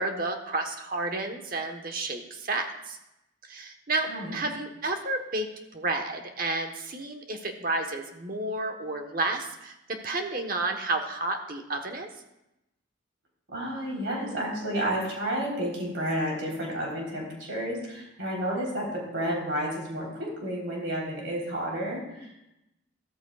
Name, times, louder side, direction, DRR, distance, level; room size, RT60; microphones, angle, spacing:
voice 1, 0.0-3.0 3.4-5.5 5.7-12.1, right 2 dB, 45° right, 5 dB, 1.1 m, -31 dB
voice 2, 13.5-22.3, equal, 75° right, -3 dB, 3.6 m, -31 dB
14.0 x 13.5 x 2.4 m, 0.89 s
head